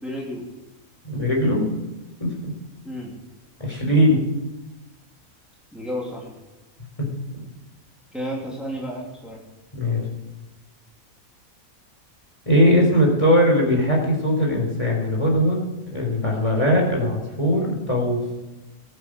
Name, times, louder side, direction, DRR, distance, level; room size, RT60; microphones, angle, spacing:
voice 1, 0.0-0.4 2.8-3.1 5.7-6.3 8.1-9.4, equal, ahead, -4 dB, 3.2 m, -31 dB
voice 2, 1.0-1.8 2.2-2.5 3.6-4.2 9.7-10.1 12.5-15.6 15.9-18.2, equal, 20° left, -1 dB, 4.0 m, -20 dB
21.5 x 9.1 x 6.3 m, 1.0 s
omnidirectional pair, 1.5 m